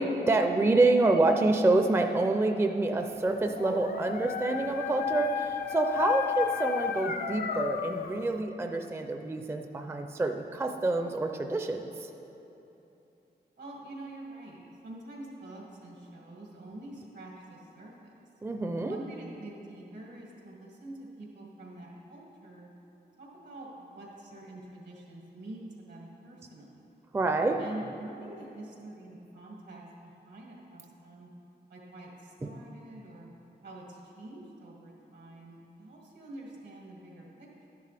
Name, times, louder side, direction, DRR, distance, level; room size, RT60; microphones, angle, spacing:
voice 1, 0.0-12.1 18.4-19.0 27.1-27.6 32.4-32.5, right 2 dB, 15° right, 5 dB, 0.4 m, -27 dB
Dog, 3.2-8.3, left 7 dB, 60° left, 0.4 m, -33 dB
voice 2, 3.7-4.1 13.6-18.1 18.9-22.7 23.2-26.8 27.6-31.3 31.7-33.3 33.6-37.7, right 2 dB, 85° right, -2 dB, 2.0 m, -46 dB
11.5 x 10.5 x 3.4 m, 3.0 s
wide cardioid pair, 145°, 17 cm